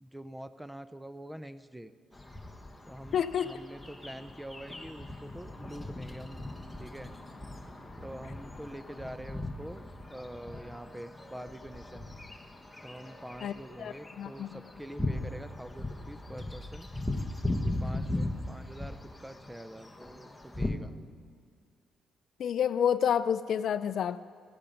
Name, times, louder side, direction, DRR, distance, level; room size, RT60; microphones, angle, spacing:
voice 1, 0.0-1.9 2.9-3.2 3.4-6.4 6.8-7.1 8.0-9.8 10.1-12.1 12.8-16.9 17.8-20.9, right 1 dB, 5° right, 13 dB, 0.5 m, -45 dB
sound 1, 2.1-20.7, left 1 dB, 10° left, 1.2 m, -39 dB
voice 2, 3.1-3.5 13.4-13.5 13.8-14.6 22.4-24.2, left 8 dB, 65° left, 15 dB, 0.4 m, -29 dB
15.5 x 9.9 x 5.3 m, 2.2 s
cardioid pair, 90°, 0 cm